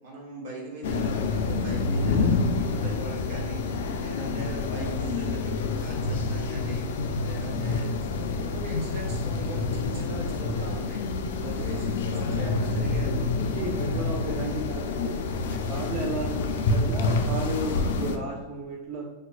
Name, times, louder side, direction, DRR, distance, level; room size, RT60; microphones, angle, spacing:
voice 1, 0.0-11.0 11.3-13.5, right 2 dB, 55° right, -3 dB, 1.2 m, -40 dB
sound 1, 0.8-18.2, left 3 dB, 90° left, 0.3 m, -28 dB
voice 2, 11.3-12.5 13.3-19.1, right 2 dB, 25° right, -3 dB, 0.3 m, -35 dB
4.1 x 2.3 x 2.4 m, 1.1 s
supercardioid pair, 175°, 0 cm